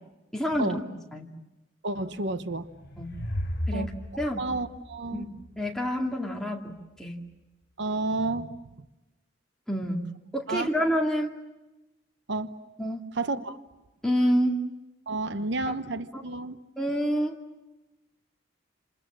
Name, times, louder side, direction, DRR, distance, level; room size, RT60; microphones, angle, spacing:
voice 1, 0.3-0.8 1.1-1.3 3.0-3.1 3.7-3.9 4.2-4.4 5.1-5.3 5.6-7.2 9.7-11.3 12.8-13.0 14.0-14.6 15.7-15.8 16.1-16.2 16.8-17.4, equal, 5° left, 0 dB, 2.3 m, -28 dB
voice 2, 1.8-2.7 3.7-3.9 4.4-5.3 7.8-8.6 10.5-10.7 12.3-12.5 13.1-13.6 15.1-16.6, right 2 dB, 60° right, 11 dB, 0.9 m, -30 dB
sound 1, 2.4-5.9, left 1 dB, 50° left, 3.5 m, -35 dB
28.0 x 27.5 x 7.4 m, 1.0 s
head